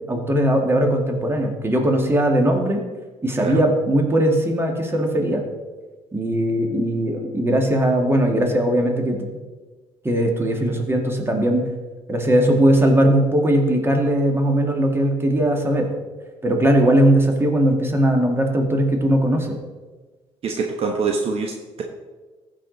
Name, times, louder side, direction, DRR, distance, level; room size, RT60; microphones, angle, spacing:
voice 1, 0.1-2.8 3.2-5.4 6.1-9.2 10.0-11.7 12.1-15.9 16.4-19.6, right 1 dB, 20° right, 2 dB, 2.0 m, -19 dB
voice 2, 20.4-21.8, right 4 dB, 55° right, 2 dB, 1.1 m, -25 dB
14.5 x 5.1 x 4.0 m, 1.3 s
supercardioid pair, 75°, 12 cm